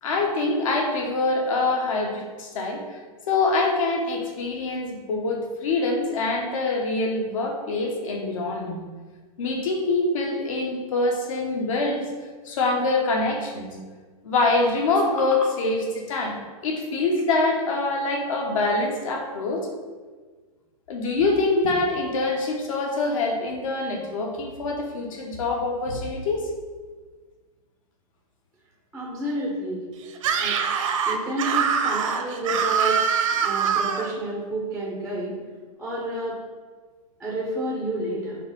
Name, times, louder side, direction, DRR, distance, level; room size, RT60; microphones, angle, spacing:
voice 1, 0.0-3.0 3.3-8.8 9.4-12.1 12.4-13.7 14.2-19.7 20.9-26.5, left 3 dB, 60° left, 1 dB, 1.3 m, -25 dB
voice 2, 28.9-29.8 30.3-30.6 31.1-33.0 33.4-35.3 35.8-36.4 37.2-38.4, right 1 dB, ahead, -4 dB, 0.6 m, -30 dB
Screaming, 30.2-34.1, right 7 dB, 60° right, 0.8 m, -23 dB
4.9 x 3.5 x 5.5 m, 1.4 s
supercardioid pair, 175°, 19 cm